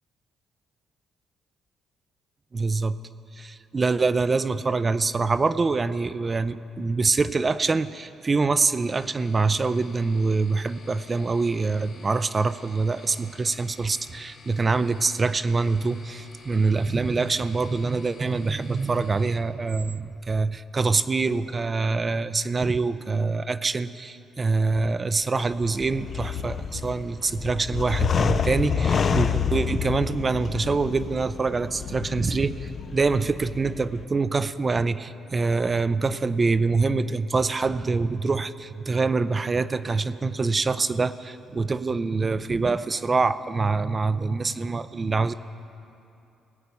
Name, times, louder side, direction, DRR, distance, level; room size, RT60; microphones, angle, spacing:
voice 1, 2.5-3.0 3.4-45.3, right 4 dB, 30° right, 13 dB, 0.4 m, -25 dB
sound 1, 8.7-19.4, left 4 dB, 65° left, 2.1 m, -51 dB
sound 2, 25.5-34.0, left 7 dB, 50° left, 0.5 m, -28 dB
19.5 x 8.3 x 5.4 m, 2.7 s
cardioid pair, 90°, 0 cm